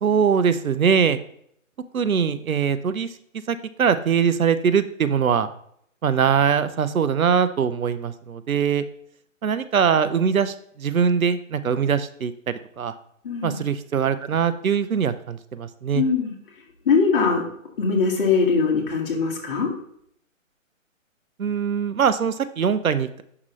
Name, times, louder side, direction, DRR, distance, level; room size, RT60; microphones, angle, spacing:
voice 1, 0.0-1.2 1.9-3.1 3.5-5.5 6.0-8.8 9.4-12.9 13.4-16.0 21.4-23.2, right 7 dB, 85° right, 12 dB, 0.7 m, -22 dB
voice 2, 13.2-13.6 15.9-16.3 16.9-17.4 17.8-19.7, left 5 dB, 40° left, -1 dB, 1.8 m, -21 dB
7.6 x 5.9 x 3.1 m, 0.68 s
hypercardioid pair, 150°, 40 cm